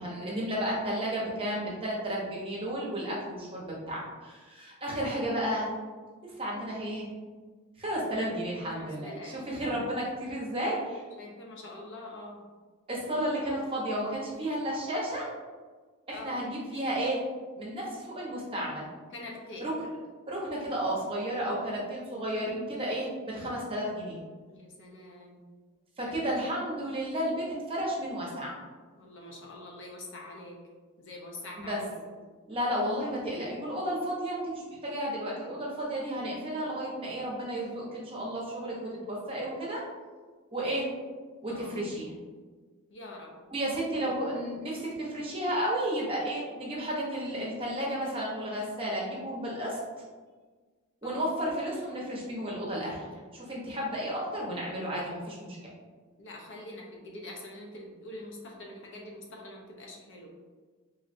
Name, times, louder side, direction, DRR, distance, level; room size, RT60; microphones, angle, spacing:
voice 1, 0.0-5.7 6.2-7.1 7.8-11.0 12.9-15.3 16.1-17.2 17.6-18.9 19.6-19.7 20.3-24.2 26.0-28.5 31.6-31.8 32.5-39.8 40.5-40.9 41.4-42.2 43.5-49.8 51.0-53.0 53.3-55.6, right 1 dB, 25° right, -4 dB, 0.8 m, -32 dB
voice 2, 8.7-9.4 11.2-12.4 16.1-16.4 19.1-19.8 24.5-25.4 26.0-26.1 29.0-30.6 31.0-32.1 41.5-41.8 42.9-43.3 44.0-44.2 51.0-51.2 56.2-60.3, left 1 dB, 55° left, -1 dB, 0.7 m, -44 dB
3.8 x 3.1 x 2.6 m, 1.4 s
head